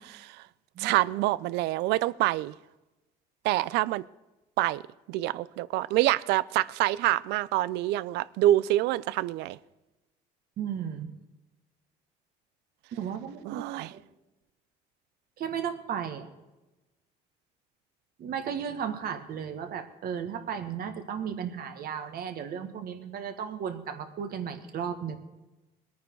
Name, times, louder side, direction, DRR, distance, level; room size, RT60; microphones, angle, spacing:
voice 1, 0.8-2.5 3.4-4.0 4.6-4.8 5.1-9.6 13.5-13.9, right 16 dB, 90° right, 0.4 m, -26 dB
voice 2, 10.6-11.1 12.9-14.0 15.4-16.3 18.2-25.2, right 8 dB, 60° right, 1.7 m, -35 dB
21.0 x 9.3 x 4.6 m
cardioid pair, 110°, 17 cm